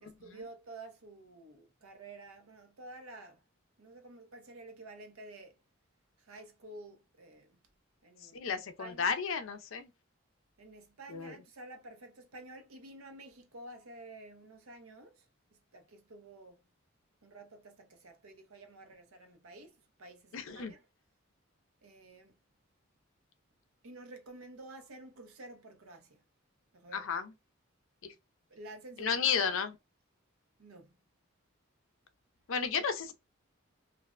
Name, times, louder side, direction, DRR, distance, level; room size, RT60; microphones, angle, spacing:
voice 1, 0.0-3.4 3.8-5.5 6.2-7.6 8.0-9.2 10.6-15.3 15.7-16.6 17.2-20.9 21.8-22.4 23.8-26.2 26.7-27.1 28.5-29.6 30.6-31.0 32.7-32.9, right 2 dB, 85° right, 0.7 m, -51 dB
voice 2, 8.3-9.9 11.1-11.3 20.3-20.7 26.9-27.3 28.0-28.1 29.0-29.7 32.5-33.1, left 6 dB, 65° left, 0.5 m, -33 dB
2.5 x 2.1 x 2.3 m
head